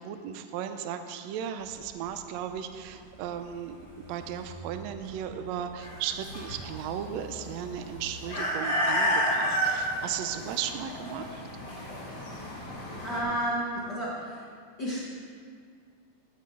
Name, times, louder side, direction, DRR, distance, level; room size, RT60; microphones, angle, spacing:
voice 1, 0.0-3.8 4.1-11.4, right 9 dB, 85° right, 8 dB, 1.5 m, -36 dB
Truck, 1.6-8.0, right 1 dB, 40° right, 1.8 m, -49 dB
sound 1, 5.8-13.2, equal, 30° left, 3.0 m, -31 dB
voice 2, 13.0-14.5 14.8-15.1, equal, 50° left, -6 dB, 1.3 m, -31 dB
14.5 x 9.6 x 3.7 m, 2.1 s
omnidirectional pair, 3.8 m